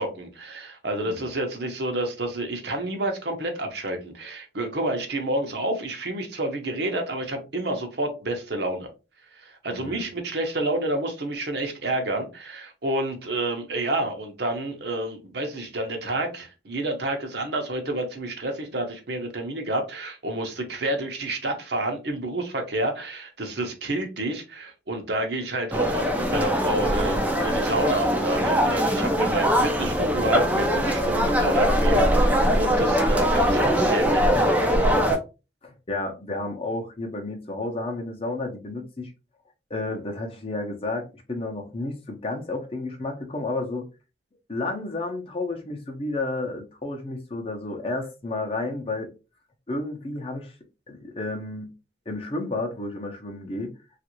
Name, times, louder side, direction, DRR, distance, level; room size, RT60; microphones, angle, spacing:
voice 1, 0.0-8.9 9.3-35.0, right 1 dB, 60° right, 0.8 m, -29 dB
voice 2, 9.7-10.0 35.6-39.1 39.7-43.9 44.5-49.1 49.7-50.5 50.9-51.7 52.1-53.7, left 2 dB, 30° left, 0.7 m, -31 dB
sound 1, 25.7-35.2, equal, 10° right, 0.4 m, -22 dB
3.2 x 2.4 x 3.0 m
head